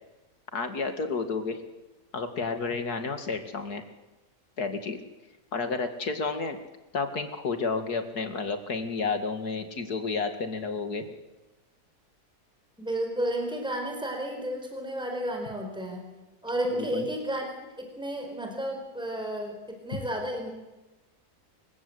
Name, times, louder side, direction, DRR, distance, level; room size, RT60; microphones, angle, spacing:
voice 1, 0.5-1.6 2.1-3.8 4.6-5.0 5.5-6.6 6.9-11.0 16.8-17.1, left 4 dB, 85° left, 8 dB, 2.7 m, -31 dB
voice 2, 12.8-16.0 16.4-17.5 17.8-20.5, right 1 dB, 5° right, 3 dB, 4.3 m, -32 dB
28.0 x 16.0 x 8.0 m, 1.1 s
omnidirectional pair, 1.6 m